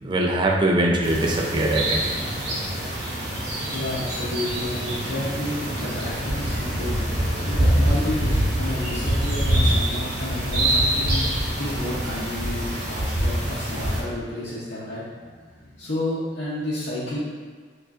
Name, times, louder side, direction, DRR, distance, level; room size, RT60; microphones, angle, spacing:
voice 1, 0.0-2.0, right 1 dB, 25° right, -1 dB, 0.4 m, -22 dB
sound 1, 1.0-14.0, right 1 dB, 70° right, 0.9 m, -25 dB
voice 2, 3.7-7.0 7.5-8.3 8.6-11.2 11.6-15.0 15.5-17.2, left 1 dB, 70° left, -10 dB, 0.7 m, -31 dB
4.7 x 2.4 x 2.4 m, 1.5 s
head